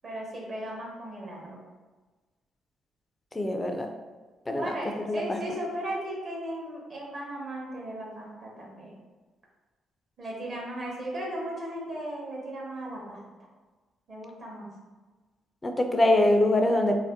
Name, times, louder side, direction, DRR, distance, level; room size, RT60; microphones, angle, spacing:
voice 1, 0.0-1.6 4.5-8.9 10.2-13.2 14.1-14.7, right 1 dB, 45° right, -3 dB, 0.9 m, -36 dB
voice 2, 3.4-3.9 4.5-4.7 5.1-5.4 15.6-17.0, left 1 dB, 20° left, 4 dB, 0.3 m, -23 dB
2.6 x 2.0 x 3.5 m, 1.3 s
cardioid pair, 90°, 0 cm